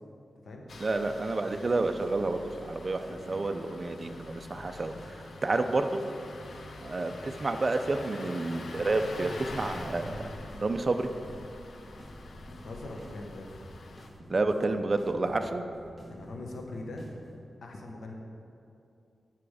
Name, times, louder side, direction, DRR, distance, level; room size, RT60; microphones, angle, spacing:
Engine starting, 0.7-14.1, left 3 dB, 65° left, 0.6 m, -46 dB
voice 1, 0.8-4.9 5.4-6.0 6.8-10.2 10.6-11.1 14.3-15.6, right 3 dB, 35° right, 7 dB, 0.5 m, -29 dB
sound 1, 1.5-17.4, equal, ahead, 1.4 m, -50 dB
sound 2, 8.7-14.2, left 1 dB, 40° left, 0.8 m, -48 dB
voice 2, 12.5-13.5 16.1-17.1 17.6-18.1, left 2 dB, 85° left, 1 dB, 1.1 m, -41 dB
9.2 x 5.9 x 4.9 m, 2.6 s
wide cardioid pair, 135°, 0 cm